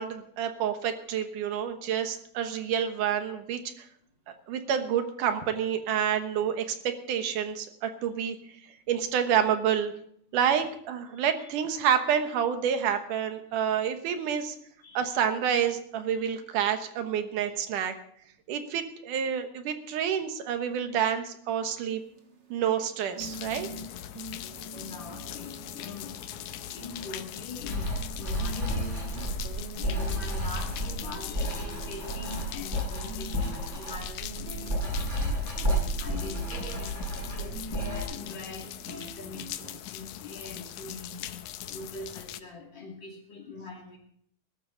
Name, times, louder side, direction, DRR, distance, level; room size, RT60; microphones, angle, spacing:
voice 1, 0.0-3.9 4.5-8.4 8.9-9.9 10.3-14.6 14.9-17.9 18.5-22.0 22.5-23.7, right 8 dB, 85° right, 8 dB, 2.8 m, -28 dB
voice 2, 11.1-11.5 14.8-15.2 16.2-16.3 24.7-26.2 26.7-29.4 29.8-35.0 35.6-41.3 41.7-44.0, left 3 dB, 40° left, 0 dB, 3.0 m, -43 dB
sound 1, 21.6-39.8, right 4 dB, 40° right, 1.9 m, -46 dB
sound 2, 23.2-42.4, left 12 dB, 75° left, 2.0 m, -41 dB
Writing, 27.6-38.0, equal, 20° right, 8.3 m, -32 dB
20.0 x 12.5 x 3.9 m, 0.67 s
omnidirectional pair, 3.5 m